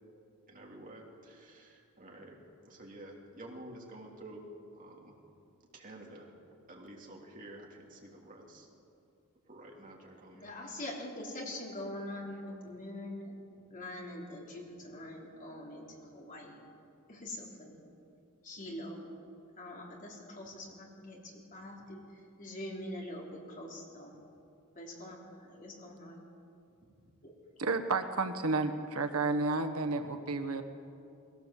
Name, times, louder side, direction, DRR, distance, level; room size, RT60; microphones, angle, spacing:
voice 1, 0.5-2.3 2.6-4.4 4.8-5.2 5.7-6.3 6.7-8.7 9.5-10.5 12.5-12.7 26.8-26.9, right 1 dB, 40° right, -1 dB, 3.1 m, -50 dB
voice 2, 10.3-13.3 13.7-16.6 17.1-17.8 18.4-19.0 19.6-22.0 22.4-24.1 24.8-26.2 27.2-27.3, left 1 dB, 35° left, -1 dB, 3.4 m, -44 dB
voice 3, 27.6-30.6, right 3 dB, 85° right, 8 dB, 1.2 m, -31 dB
21.0 x 17.0 x 7.5 m, 2.6 s
head